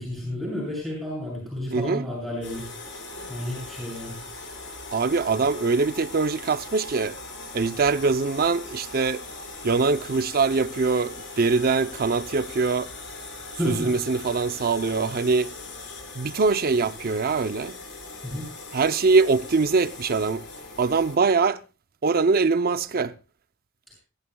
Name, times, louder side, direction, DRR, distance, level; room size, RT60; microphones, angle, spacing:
voice 1, 0.0-2.7 3.3-4.2 13.6-13.9 18.2-18.5, equal, ahead, 7.9 m, -31 dB
voice 2, 1.7-2.1 4.9-7.2 7.5-9.2 9.6-12.9 13.6-15.5 16.1-17.8 18.7-20.4 20.8-21.6 22.0-23.1, right 4 dB, 45° right, 0.6 m, -23 dB
sound 1, 2.4-21.2, left 3 dB, 60° left, 4.8 m, -40 dB
23.5 x 14.5 x 2.3 m
head